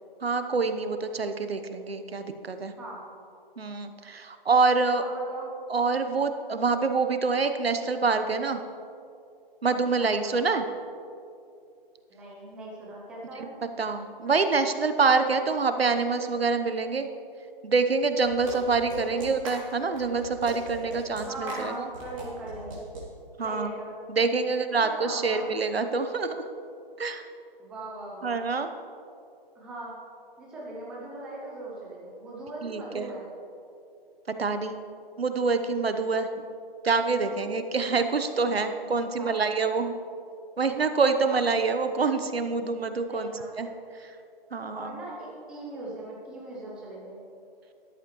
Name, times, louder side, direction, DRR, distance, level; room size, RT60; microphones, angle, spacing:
voice 1, 0.2-2.7 3.6-5.0 5.7-8.6 9.6-10.6 13.4-13.5 13.8-17.1 17.6-21.9 23.4-23.7 24.1-26.5 27.0-27.2 28.2-28.7 32.6-33.1 34.4-34.7 35.2-36.3 36.8-39.9 40.6-43.3 43.6-43.7 44.5-45.0, right 4 dB, 85° right, 9 dB, 1.0 m, -26 dB
voice 2, 4.9-5.5 10.0-10.4 12.1-13.5 18.9-19.3 21.3-22.8 23.4-23.9 24.4-25.5 27.6-28.4 29.5-29.9 30.4-33.3 37.3-37.4 38.9-39.7 41.2-41.4 43.1-43.7 44.7-47.2, right 2 dB, 5° right, -4 dB, 0.5 m, -39 dB
sound 1, 18.2-23.0, right 2 dB, 35° right, 2.6 m, -40 dB
13.5 x 11.0 x 3.1 m, 2.5 s
figure-of-eight pair, 150°, 30 cm